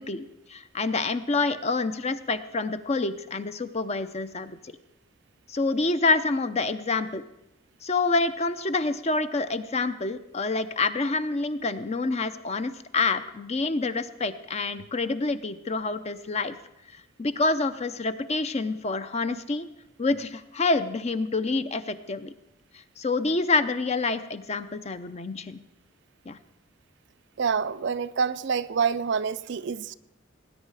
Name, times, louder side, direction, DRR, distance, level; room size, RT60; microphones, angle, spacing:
voice 1, 0.0-4.6 5.5-7.2 7.8-16.6 17.2-19.7 20.0-22.3 23.0-25.6 26.3-26.4, left 3 dB, 35° left, 0.6 m, -27 dB
voice 2, 27.4-29.9, right 6 dB, 60° right, 0.4 m, -27 dB
19.0 x 9.6 x 4.8 m
head